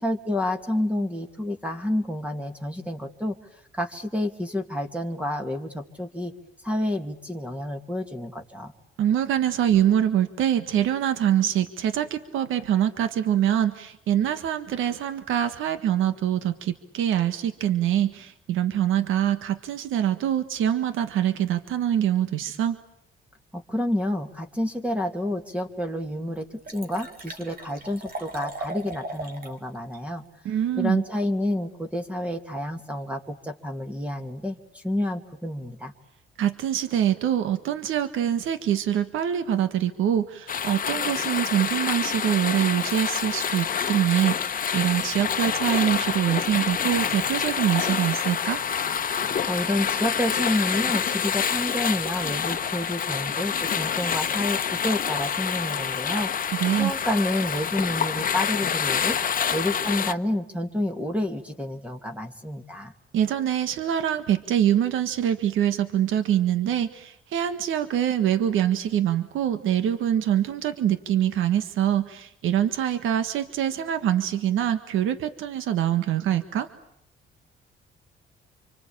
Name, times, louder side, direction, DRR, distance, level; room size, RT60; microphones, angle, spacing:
voice 1, 0.0-3.4 3.7-6.3 6.6-8.7 23.5-30.2 30.8-35.9 49.5-59.2 59.5-62.9, left 1 dB, 5° right, 5 dB, 2.6 m, -29 dB
voice 2, 9.0-22.8 30.5-31.0 36.4-48.6 56.5-56.9 63.1-76.7, right 10 dB, 85° right, 10 dB, 1.6 m, -24 dB
Liquid, 25.5-25.6 26.0-26.1 26.3-29.6 29.9-30.0, right 2 dB, 45° right, 3.4 m, -38 dB
sound 1, 40.5-60.1, left 7 dB, 45° left, 1.2 m, -27 dB
26.5 x 25.0 x 8.7 m, 0.75 s
cardioid pair, 90°, 20 cm